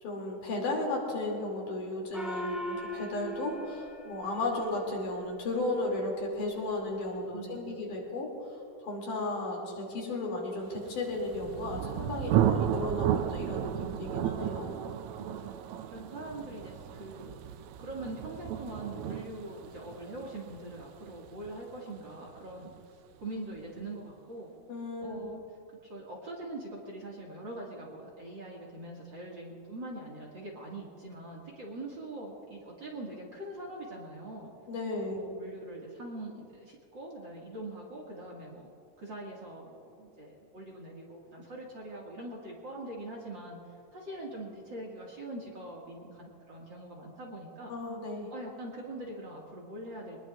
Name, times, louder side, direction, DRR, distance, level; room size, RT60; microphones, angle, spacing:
voice 1, 0.0-14.8 24.7-25.3 34.7-35.3 47.7-48.3, left 2 dB, 75° left, -2 dB, 4.3 m, -34 dB
Gong, 2.1-5.0, equal, ahead, 3.6 m, -39 dB
voice 2, 7.3-7.9 15.2-17.4 17.8-22.7 23.2-24.5 25.0-25.4 25.8-34.5 35.2-38.7 39.0-43.6 43.9-47.7 48.3-50.2, right 1 dB, 40° right, -3 dB, 2.4 m, -43 dB
Thunder, 11.0-22.5, right 11 dB, 80° right, 1.8 m, -33 dB
24.0 x 20.5 x 2.5 m, 2.3 s
omnidirectional pair, 3.7 m